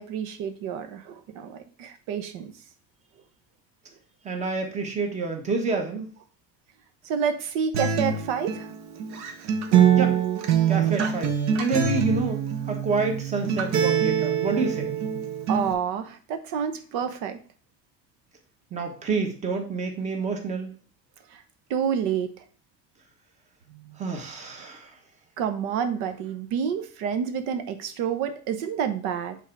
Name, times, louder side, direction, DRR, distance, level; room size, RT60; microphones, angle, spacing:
voice 1, 0.0-2.5 7.0-8.7 15.5-17.4 21.3-21.4 21.7-22.4 23.7-23.9 24.6-24.7 25.4-29.4, right 7 dB, 90° right, 8 dB, 1.0 m, -29 dB
voice 2, 4.2-6.1 9.9-10.2 10.7-14.9 18.7-20.7 24.0-25.0, right 4 dB, 25° right, 3 dB, 1.2 m, -28 dB
Acoustic guitar, 7.7-15.7, right 8 dB, 60° right, 1.1 m, -24 dB
8.4 x 3.8 x 4.6 m, 0.40 s
cardioid pair, 175°, 30 cm